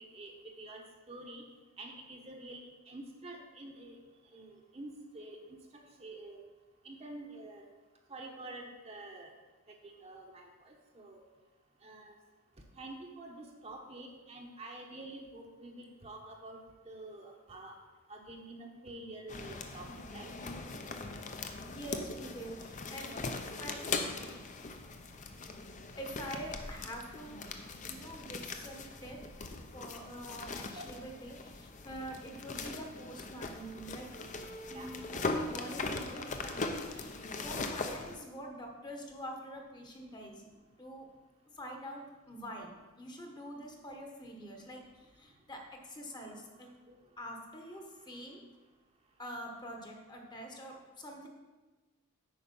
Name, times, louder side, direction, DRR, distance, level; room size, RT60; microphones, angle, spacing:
voice 1, 0.0-1.4 1.8-4.0 4.3-6.4 6.8-7.7 8.1-9.3 9.7-11.2 11.8-12.1 12.8-16.6 16.9-17.8 18.1-20.3 30.7-30.8 34.7-34.9 46.1-46.4 46.9-47.0, right 2 dB, 30° right, 1 dB, 0.9 m, -48 dB
sound 1, 19.3-38.2, left 3 dB, 35° left, 0.6 m, -40 dB
voice 2, 21.5-23.2 23.6-24.2 26.0-27.5 27.8-34.1 34.7-40.5 40.8-41.1 41.5-42.7 43.0-46.7 47.2-48.4 49.2-51.3, equal, 20° left, 2 dB, 1.0 m, -45 dB
8.7 x 5.3 x 5.3 m, 1.2 s
head